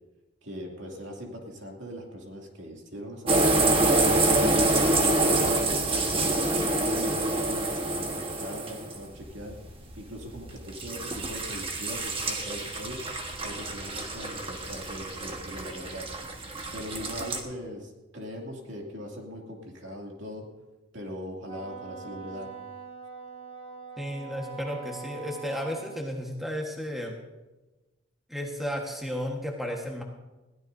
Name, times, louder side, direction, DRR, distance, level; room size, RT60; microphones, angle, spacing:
voice 1, 0.4-3.8 4.3-6.1 6.5-9.6 9.9-13.0 13.4-16.1 16.7-20.5 20.9-22.6, equal, 60° right, 0 dB, 2.6 m, -40 dB
sound 1, 3.3-17.4, right 2 dB, 25° right, 1.3 m, -27 dB
Wind instrument woodwind instrument, 21.4-26.0, right 6 dB, 25° left, 1.6 m, -43 dB
voice 2, 24.0-27.2 28.3-30.0, equal, ahead, 0 dB, 1.4 m, -33 dB
21.0 x 16.0 x 2.7 m, 1.1 s
head